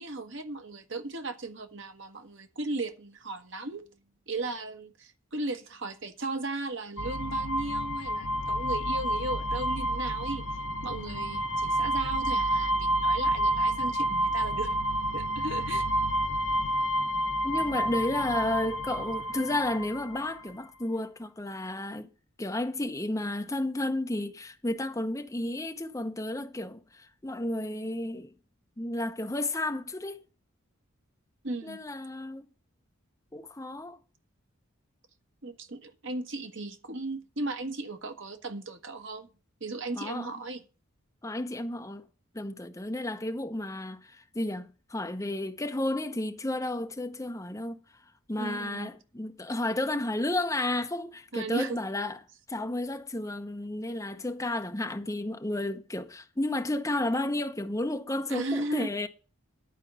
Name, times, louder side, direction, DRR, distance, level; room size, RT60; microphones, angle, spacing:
voice 1, 0.0-3.9 4.3-10.4 10.8-14.8 15.1-15.9 31.4-31.8 35.4-39.3 39.6-40.6 48.4-48.9 51.3-51.8 58.3-58.9, right 2 dB, 60° right, 1.2 m, -36 dB
sound 1, 7.0-20.4, right 1 dB, 60° left, 0.9 m, -29 dB
voice 2, 17.4-22.1 22.4-28.3 28.8-30.2 31.6-32.4 33.3-34.0 40.0-40.3 41.2-42.0 42.3-47.8 48.3-52.2 52.5-59.1, left 1 dB, 15° left, 0.7 m, -32 dB
11.0 x 4.5 x 7.5 m
head